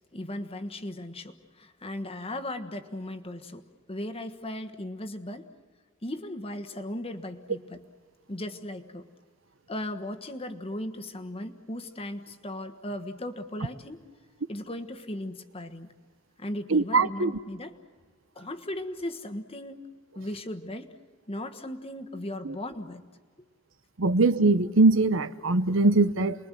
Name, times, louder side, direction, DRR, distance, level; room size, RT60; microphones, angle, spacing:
voice 1, 0.1-5.5 6.0-7.9 8.3-9.1 9.7-14.0 14.5-15.9 16.4-17.8 18.3-19.8 20.1-20.9 21.3-23.0, left 1 dB, 30° left, 1.4 m, -37 dB
voice 2, 16.7-17.3 22.5-22.6 24.0-26.4, right 3 dB, 75° right, 0.9 m, -22 dB
29.5 x 22.0 x 7.6 m
head